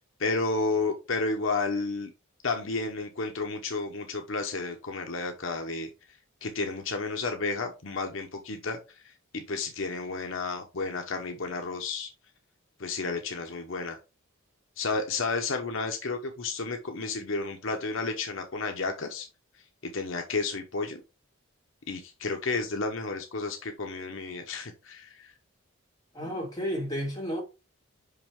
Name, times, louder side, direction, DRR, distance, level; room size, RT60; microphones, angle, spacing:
voice 1, 0.2-2.1 2.4-5.9 6.4-12.1 12.8-14.0 14.8-19.3 19.8-21.0 21.9-25.3, left 3 dB, 65° left, 0.9 m, -32 dB
voice 2, 26.1-27.4, equal, 20° left, 2.9 m, -32 dB
5.7 x 5.5 x 3.6 m
head